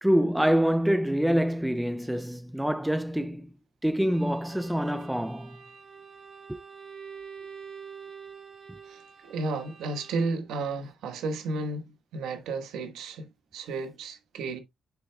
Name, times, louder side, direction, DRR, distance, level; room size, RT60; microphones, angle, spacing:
voice 1, 0.0-3.5 3.8-5.6 6.5-6.6, equal, 5° right, 0.4 m, -26 dB
Bowed string instrument, 4.0-10.6, right 6 dB, 55° right, 2.2 m, -47 dB
voice 2, 8.9-14.6, right 3 dB, 85° right, 1.4 m, -33 dB
7.4 x 7.1 x 2.3 m
cardioid pair, 90°, 0 cm